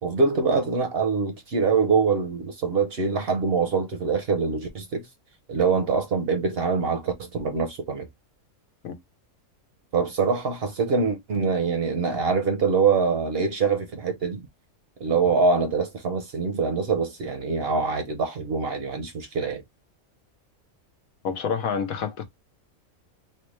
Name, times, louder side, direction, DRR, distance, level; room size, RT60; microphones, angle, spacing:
voice 1, 0.0-5.0 5.5-8.1 9.9-14.4 15.0-19.6, right 5 dB, 55° right, 0.7 m, -24 dB
voice 2, 21.2-22.2, left 6 dB, 80° left, 1.2 m, -28 dB
3.5 x 2.1 x 3.0 m
omnidirectional pair, 1.5 m